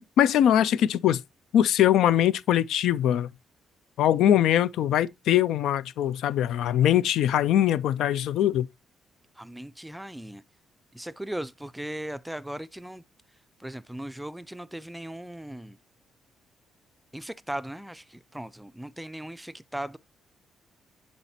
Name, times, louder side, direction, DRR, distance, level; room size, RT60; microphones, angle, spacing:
voice 1, 0.2-1.2 1.5-3.3 4.0-8.7, left 11 dB, 80° left, 0.3 m, -22 dB
voice 2, 9.4-10.4 10.9-13.0 13.6-15.8 17.1-20.0, right 1 dB, 5° right, 0.4 m, -38 dB
10.0 x 4.1 x 2.7 m
cardioid pair, 90°, 0 cm